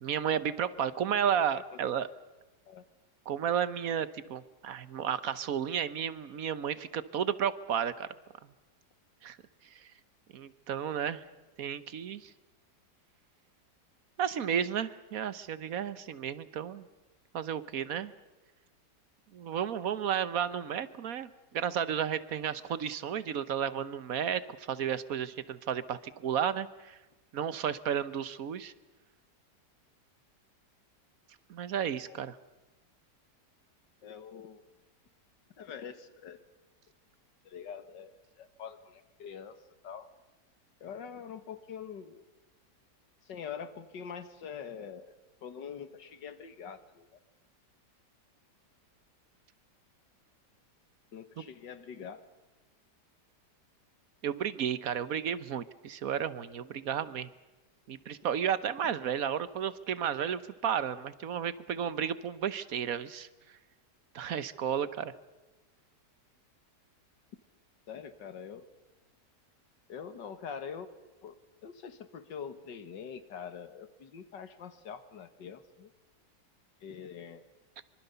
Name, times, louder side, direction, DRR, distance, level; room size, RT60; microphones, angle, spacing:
voice 1, 0.0-2.1 3.3-8.1 9.2-9.4 10.3-11.2 11.6-12.3 14.2-16.8 17.3-18.1 19.3-27.0 27.3-28.7 31.5-32.4 54.2-57.3 57.9-63.3 64.1-65.1, right 8 dB, 60° right, 15 dB, 1.3 m, -32 dB
voice 2, 34.0-34.6 35.6-36.4 37.5-39.6 39.8-40.1 40.8-42.2 43.2-45.1 45.4-47.2 51.1-52.2 67.9-68.7 69.9-70.9 71.2-71.4 71.6-75.9 76.8-77.5, left 7 dB, 90° left, 11 dB, 2.1 m, -44 dB
25.5 x 24.5 x 6.9 m, 1.1 s
omnidirectional pair, 1.9 m